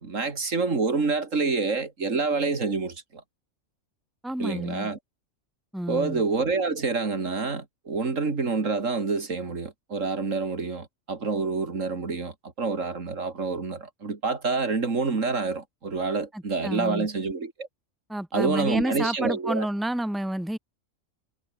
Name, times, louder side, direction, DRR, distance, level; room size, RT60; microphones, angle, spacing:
voice 1, 0.0-3.0 4.4-5.0 5.9-17.7 18.3-19.7, right 4 dB, 70° right, 2.8 m, -27 dB
voice 2, 4.2-4.9 5.7-6.2 16.3-17.1 18.1-20.6, right 1 dB, ahead, 2.0 m, -30 dB
omnidirectional pair, 1.4 m